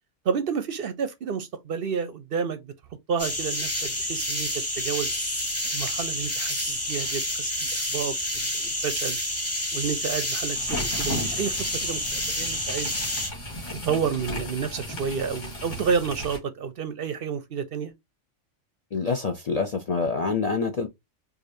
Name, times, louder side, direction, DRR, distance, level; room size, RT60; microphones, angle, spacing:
voice 1, 0.2-2.7 3.1-5.1 5.7-9.2 9.7-13.0 13.9-17.9, right 6 dB, 60° right, 0.7 m, -30 dB
sound 1, 3.2-13.3, left 1 dB, 15° left, 1.0 m, -29 dB
sound 2, 10.5-16.4, left 1 dB, 70° left, 2.0 m, -35 dB
voice 2, 18.9-20.9, left 4 dB, 50° left, 0.5 m, -26 dB
4.9 x 2.5 x 2.6 m
omnidirectional pair, 1.3 m